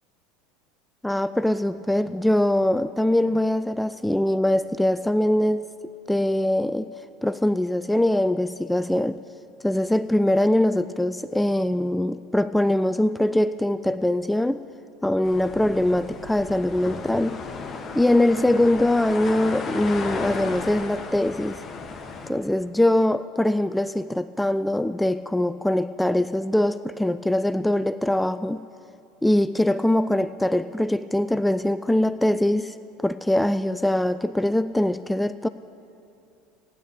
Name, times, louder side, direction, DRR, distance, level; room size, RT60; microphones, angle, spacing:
voice 1, 1.0-5.7 6.1-6.9 7.2-9.2 9.6-14.6 15.0-17.4 17.9-21.6 22.3-28.6 29.2-32.8 33.0-35.5, left 1 dB, 5° left, 13 dB, 0.3 m, -22 dB
sound 1, 15.2-22.3, left 4 dB, 30° left, 1.3 m, -34 dB
15.5 x 10.5 x 6.8 m, 2.7 s
figure-of-eight pair, 70°, 0 cm